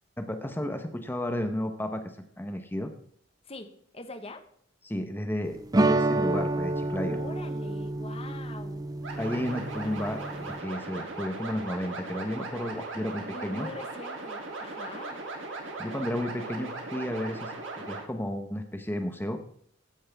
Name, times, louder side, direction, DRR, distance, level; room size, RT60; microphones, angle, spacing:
voice 1, 0.2-2.0 2.4-2.9 4.8-7.2 9.2-13.7 15.8-19.4, left 1 dB, 10° left, 6 dB, 1.0 m, -33 dB
voice 2, 3.4-4.4 7.0-8.8 13.1-15.2 15.8-16.2, left 2 dB, 30° left, 7 dB, 1.4 m, -43 dB
sound 1, 5.7-10.6, right 2 dB, 20° right, 0.5 m, -29 dB
sound 2, 9.0-18.0, right 3 dB, 85° right, 3.0 m, -38 dB
15.0 x 9.7 x 3.6 m, 0.65 s
head